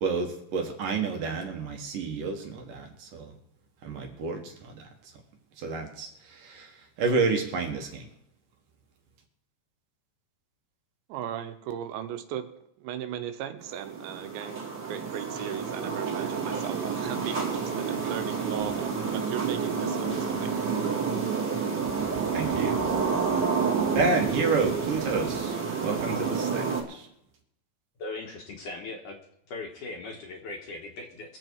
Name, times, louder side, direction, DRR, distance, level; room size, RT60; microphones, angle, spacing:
voice 1, 0.0-3.3 3.8-4.8 5.6-6.7 7.0-8.1 22.3-22.8 23.9-27.1, right 4 dB, 60° right, 3 dB, 2.6 m, -30 dB
voice 2, 11.1-12.5 12.8-20.7, right 10 dB, 90° right, 8 dB, 3.3 m, -37 dB
sound 1, 13.6-26.8, right 5 dB, 30° right, 2.3 m, -29 dB
voice 3, 28.0-29.2 29.5-31.4, left 3 dB, 60° left, 1 dB, 2.4 m, -39 dB
23.0 x 7.8 x 4.6 m, 0.76 s
omnidirectional pair, 5.0 m